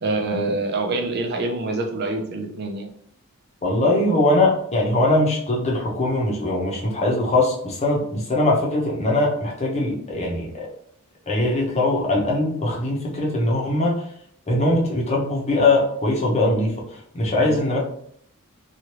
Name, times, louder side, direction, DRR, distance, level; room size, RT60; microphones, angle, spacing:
voice 1, 0.0-2.9 17.4-17.6, right 2 dB, 50° right, 2 dB, 0.6 m, -26 dB
voice 2, 3.6-10.5 11.3-14.0 14.5-16.7 17.1-17.8, left 2 dB, 30° left, -2 dB, 0.8 m, -21 dB
3.1 x 2.4 x 2.9 m, 0.66 s
head